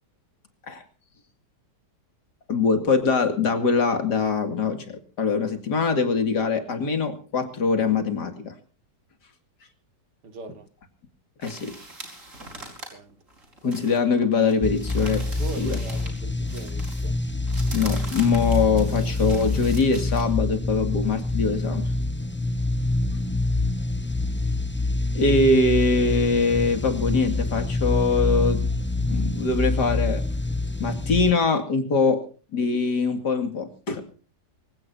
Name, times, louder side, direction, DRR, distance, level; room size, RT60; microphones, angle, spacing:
voice 1, 2.5-8.5 11.4-11.8 13.6-15.3 15.6-15.8 17.7-21.9 25.1-28.7 29.1-30.2 30.8-32.3 32.5-34.0, left 4 dB, 80° left, 2.9 m, -23 dB
voice 2, 10.2-10.7 12.7-13.2 15.3-17.2, right 3 dB, 80° right, 2.5 m, -41 dB
sound 1, 11.4-16.2 16.4-20.2, right 2 dB, 45° right, 5.1 m, -42 dB
sound 2, 14.6-31.3, left 2 dB, 20° left, 0.3 m, -26 dB
24.5 x 16.5 x 2.7 m
omnidirectional pair, 1.8 m